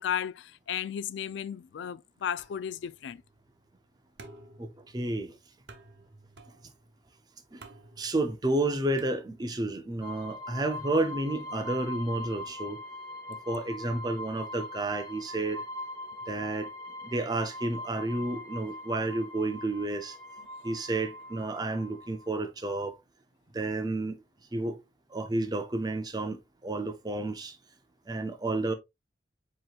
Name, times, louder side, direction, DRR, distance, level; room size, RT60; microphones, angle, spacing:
voice 1, 0.0-3.2, left 9 dB, 75° left, 0.3 m, -34 dB
sound 1, 2.4-9.8, right 2 dB, 70° right, 0.9 m, -55 dB
voice 2, 4.6-5.4 7.5-7.6 8.0-12.8 13.3-15.6 16.3-16.7 17.0-20.2 20.6-23.0 23.5-24.2 24.5-24.8 25.1-27.6 28.1-28.7, right 2 dB, 20° right, 0.5 m, -31 dB
sound 2, 10.0-22.5, left 1 dB, 15° left, 1.4 m, -42 dB
7.5 x 3.0 x 2.4 m
head